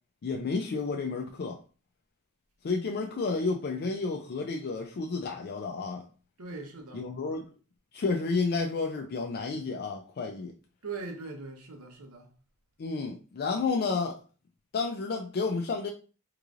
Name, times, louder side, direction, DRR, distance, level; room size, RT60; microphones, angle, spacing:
voice 1, 0.2-1.6 2.6-6.1 6.9-7.5 7.9-10.5 12.8-14.2 14.7-15.9, left 4 dB, 45° left, 0.4 m, -31 dB
voice 2, 6.4-7.1 10.8-12.3, right 4 dB, 75° right, 0.9 m, -40 dB
3.8 x 3.1 x 2.4 m
head